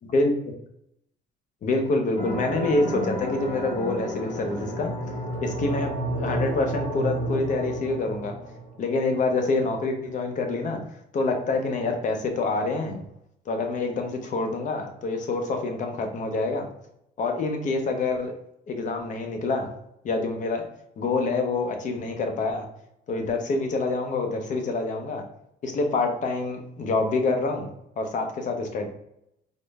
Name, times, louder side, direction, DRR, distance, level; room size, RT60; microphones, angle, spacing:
voice 1, 0.1-0.5 1.6-4.9 5.4-5.9 6.2-8.3 8.8-10.8 11.1-13.0 13.5-16.7 17.2-18.3 18.7-19.7 20.0-20.7 21.0-22.7 23.1-25.2 25.6-27.7 28.0-28.9, left 3 dB, 50° left, 4 dB, 0.7 m, -26 dB
sound 1, 2.2-8.9, right 1 dB, 70° left, 1.0 m, -31 dB
3.7 x 2.1 x 3.4 m, 0.79 s
cardioid pair, 110°, 17 cm